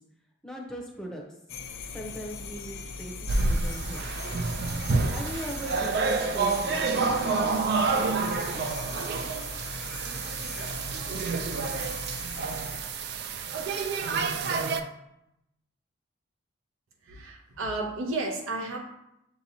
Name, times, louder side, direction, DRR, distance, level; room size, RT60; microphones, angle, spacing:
voice 1, 0.4-1.2 1.9-4.1 5.1-8.6, equal, 5° left, -1 dB, 0.7 m, -40 dB
sound 1, 1.5-12.8, left 3 dB, 80° left, 0.4 m, -40 dB
sound 2, 3.3-14.8, right 4 dB, 55° right, 0.3 m, -28 dB
voice 2, 17.0-18.8, right 2 dB, 85° right, 0 dB, 0.6 m, -32 dB
6.8 x 2.8 x 2.7 m, 0.84 s
head